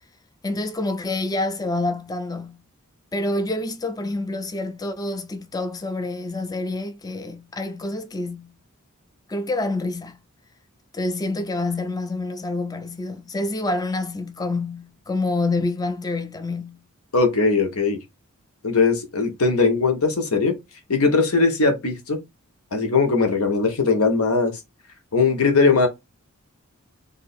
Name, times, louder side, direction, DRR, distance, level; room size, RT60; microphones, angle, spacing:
voice 1, 0.4-2.6 3.1-8.5 9.3-10.2 10.9-16.8, left 2 dB, 15° left, 0.5 m, -27 dB
voice 2, 17.1-18.0 18.6-20.6 20.9-22.2 22.7-24.6 25.1-25.9, left 4 dB, 80° left, 1.1 m, -20 dB
2.9 x 2.6 x 4.2 m
head